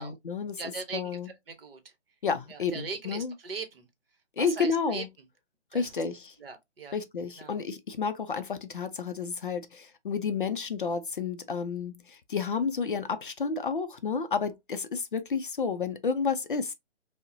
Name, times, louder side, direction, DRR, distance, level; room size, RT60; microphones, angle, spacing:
voice 1, 0.0-0.6 0.9-1.3 2.2-3.3 4.4-5.1 5.7-6.3 6.9-16.7, left 5 dB, 50° left, 0.4 m, -31 dB
voice 2, 0.6-1.9 2.5-3.9 4.4-5.0 5.7-5.9 6.4-7.0 7.4-7.6, right 5 dB, 55° right, 1.0 m, -40 dB
5.2 x 2.1 x 2.5 m
hypercardioid pair, 160°, 35 cm